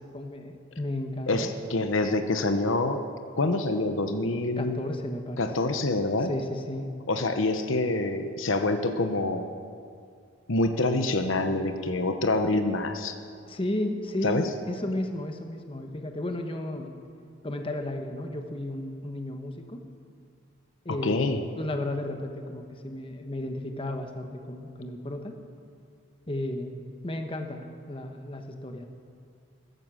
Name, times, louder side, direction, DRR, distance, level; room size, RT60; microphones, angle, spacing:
voice 1, 0.0-1.5 4.6-5.7 6.2-6.9 13.5-16.9 17.4-19.8 20.8-25.3 26.3-26.7 27.0-28.9, left 1 dB, 25° left, 5 dB, 1.2 m, -33 dB
voice 2, 1.3-3.0 3.4-4.8 5.4-6.3 7.1-9.5 10.5-13.1 14.2-14.5 21.0-21.4, left 2 dB, 70° left, 7 dB, 0.9 m, -26 dB
15.5 x 14.5 x 6.4 m, 2.3 s
head